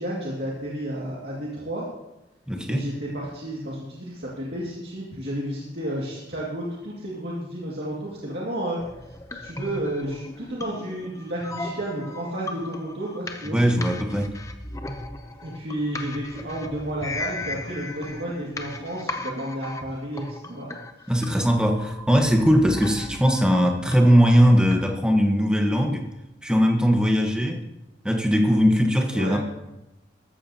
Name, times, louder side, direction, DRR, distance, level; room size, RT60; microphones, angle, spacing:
voice 1, 0.0-1.9 2.7-8.8 9.4-13.6 15.4-20.7 21.0-21.1 29.1-29.4, right 1 dB, 60° right, -5 dB, 2.2 m, -32 dB
voice 2, 2.5-2.8 13.5-14.3 21.1-26.0 26.4-27.6 28.0-29.4, equal, 5° right, 2 dB, 1.2 m, -20 dB
sound 1, 8.8-25.0, left 2 dB, 15° left, 0.7 m, -37 dB
14.5 x 13.0 x 2.9 m, 0.97 s
head